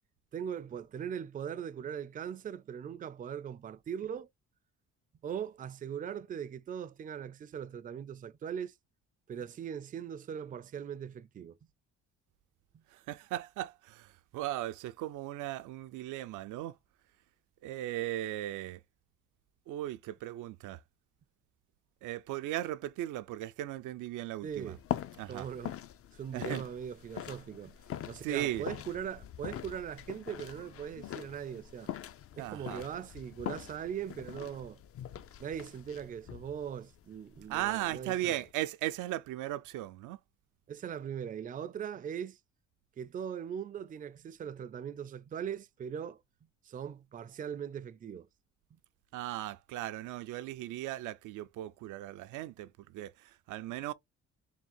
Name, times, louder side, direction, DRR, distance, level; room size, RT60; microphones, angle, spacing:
voice 1, 0.3-4.3 5.2-8.7 9.3-11.6 12.7-12.8 24.4-24.8 25.3-25.8 26.1-27.8 28.1-31.9 32.3-34.8 35.2-38.4 40.7-42.4 43.0-46.2 46.6-48.3 48.7-48.8, right 8 dB, 30° right, 0.4 m, -40 dB
voice 2, 12.9-16.8 17.6-18.8 19.7-20.8 22.0-24.7 25.2-25.5 26.3-26.6 28.2-28.7 32.4-32.8 37.5-40.2 49.1-53.9, right 14 dB, 90° right, 0.5 m, -37 dB
sound 1, 24.5-38.5, left 11 dB, 50° left, 0.4 m, -43 dB
3.6 x 2.2 x 4.2 m
cardioid pair, 90°, 30 cm